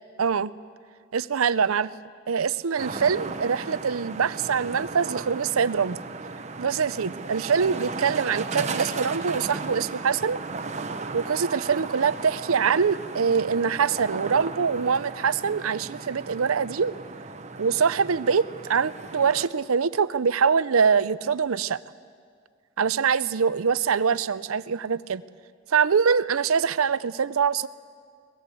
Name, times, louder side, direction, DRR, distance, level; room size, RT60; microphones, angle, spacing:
voice 1, 0.2-0.5 1.1-1.9 2.3-6.0 6.6-10.4 11.1-16.9 17.6-21.8 22.8-25.2 25.7-27.7, right 6 dB, 80° right, 17 dB, 0.6 m, -24 dB
sound 1, 2.8-19.5, right 3 dB, 35° right, 1.0 m, -36 dB
22.0 x 20.0 x 8.4 m, 2.1 s
head